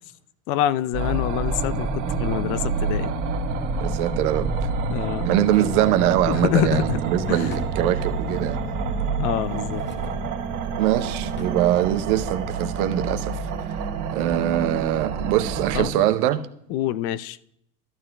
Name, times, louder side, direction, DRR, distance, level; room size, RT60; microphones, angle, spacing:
voice 1, 0.5-3.1 4.9-5.3 6.3-7.0 7.3-7.5 9.2-9.8 15.7-15.9 16.7-17.4, left 12 dB, 55° left, 0.5 m, -26 dB
sound 1, 0.9-15.9, right 5 dB, 40° right, 1.6 m, -28 dB
sound 2, 1.7-10.3, left 6 dB, 90° left, 0.8 m, -36 dB
voice 2, 3.8-4.7 5.2-8.6 10.8-13.7 14.1-16.4, right 12 dB, 70° right, 0.8 m, -23 dB
Drawer open or close, 5.1-8.4 9.3-10.2 10.6-11.6 11.9-12.0, left 2 dB, 25° left, 1.6 m, -44 dB
13.5 x 12.0 x 2.2 m
hypercardioid pair, 85°, 46 cm